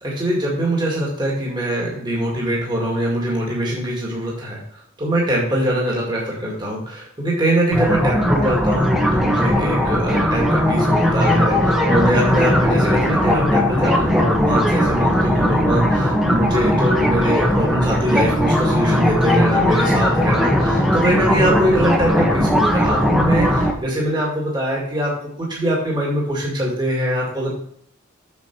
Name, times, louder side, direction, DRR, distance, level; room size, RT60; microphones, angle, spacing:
voice 1, 0.0-4.6 5.0-25.1 25.4-27.5, right 1 dB, 20° right, -3 dB, 2.0 m, -22 dB
sound 1, 7.7-23.7, equal, ahead, 1.0 m, -18 dB
7.2 x 6.9 x 4.6 m, 0.69 s
head